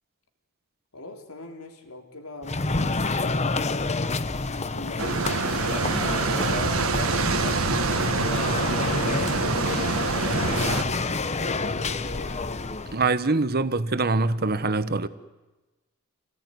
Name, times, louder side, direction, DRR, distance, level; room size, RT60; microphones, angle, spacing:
voice 1, 0.9-3.7 4.5-8.9 9.3-12.5, left 2 dB, 80° left, 3.6 m, -43 dB
sound 1, 2.4-13.1, left 3 dB, 30° left, 1.0 m, -28 dB
sound 2, 5.0-10.8, right 3 dB, 70° right, 1.7 m, -25 dB
voice 2, 12.9-15.1, right 3 dB, 45° right, 1.3 m, -24 dB
29.0 x 18.5 x 9.6 m
head